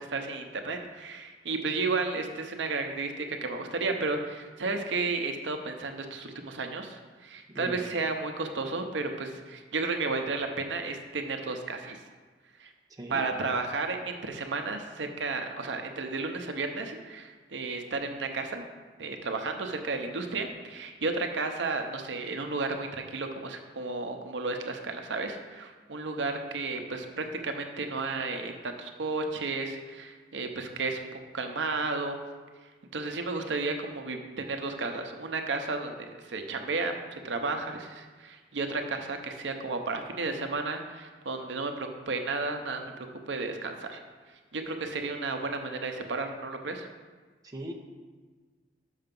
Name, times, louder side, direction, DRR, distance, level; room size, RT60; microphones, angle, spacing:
voice 1, 0.0-12.0 12.6-12.7 13.1-18.6 19.0-31.0 31.3-32.2 32.9-42.8 43.3-44.0 44.5-46.9, right 3 dB, 80° right, 5 dB, 0.7 m, -33 dB
voice 2, 7.5-7.8 13.0-13.3 47.4-47.7, right 1 dB, 20° right, 1 dB, 0.7 m, -39 dB
6.4 x 5.7 x 5.3 m, 1.4 s
head